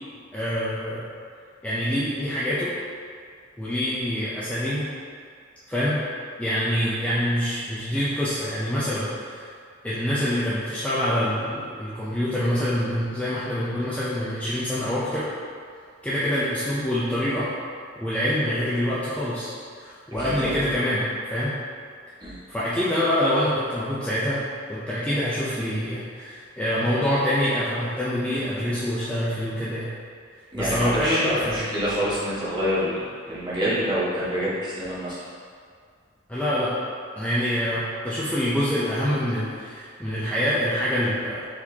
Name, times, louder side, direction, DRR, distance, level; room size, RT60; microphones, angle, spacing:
voice 1, 0.3-1.0 1.6-2.7 3.6-4.9 5.7-6.0 6.4-9.5 9.8-15.3 16.0-17.5 18.0-19.5 19.8-21.5 22.5-24.4 24.7-29.9 30.5-31.6 36.3-36.7 37.2-41.4, equal, 5° left, -10 dB, 0.5 m, -25 dB
voice 2, 30.5-35.2, equal, 25° right, -10 dB, 1.3 m, -26 dB
4.7 x 4.1 x 2.8 m, 2.2 s
head